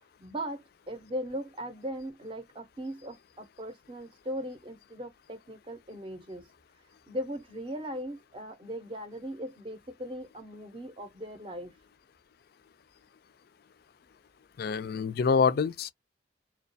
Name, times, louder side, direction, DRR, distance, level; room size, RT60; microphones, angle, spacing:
voice 1, 0.2-6.5 7.1-11.7, equal, 25° right, 0.6 m, -39 dB
voice 2, 14.6-15.9, left 5 dB, 55° left, 0.3 m, -26 dB
2.2 x 2.2 x 2.5 m
head